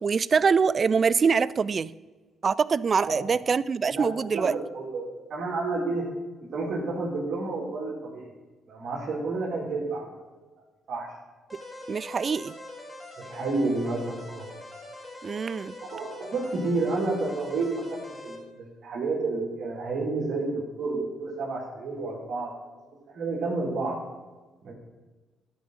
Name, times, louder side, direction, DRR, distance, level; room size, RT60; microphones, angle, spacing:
voice 1, 0.0-1.9 2.4-4.5 11.9-12.5 15.2-15.8, right 5 dB, 40° right, 19 dB, 0.3 m, -24 dB
voice 2, 3.9-6.1 6.5-8.3 8.7-10.0 10.9-11.1 13.2-14.5 15.8-22.5 23.1-24.0 24.6-24.7, right 3 dB, 60° right, -6 dB, 2.5 m, -30 dB
sound 1, 11.5-18.4, left 1 dB, 10° left, 3.4 m, -43 dB
12.0 x 5.0 x 6.2 m, 1.3 s
cardioid pair, 90°, 0 cm